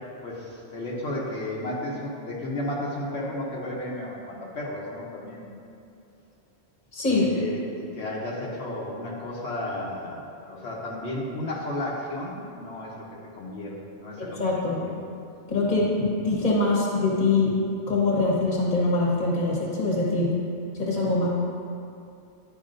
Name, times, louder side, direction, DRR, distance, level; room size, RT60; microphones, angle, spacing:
voice 1, 0.2-5.5 7.0-12.9 13.3-14.4 14.7-14.9 15.6-15.9, left 1 dB, 75° left, -5 dB, 1.2 m, -33 dB
voice 2, 6.9-7.3 14.2-14.8 15.5-17.5 17.9-20.3 20.8-21.3, left 3 dB, 40° left, -4 dB, 1.3 m, -23 dB
10.5 x 4.8 x 2.6 m, 2.5 s
omnidirectional pair, 1.1 m